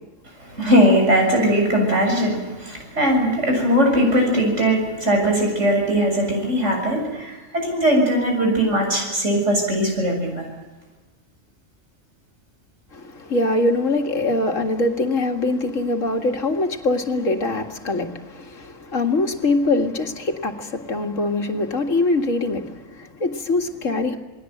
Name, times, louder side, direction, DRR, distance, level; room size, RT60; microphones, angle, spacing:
voice 1, 0.4-10.4, equal, 65° right, 7.4 m, -20 dB
voice 2, 12.9-24.2, left 2 dB, 85° left, 2.3 m, -23 dB
28.5 x 20.0 x 7.8 m
omnidirectional pair, 1.3 m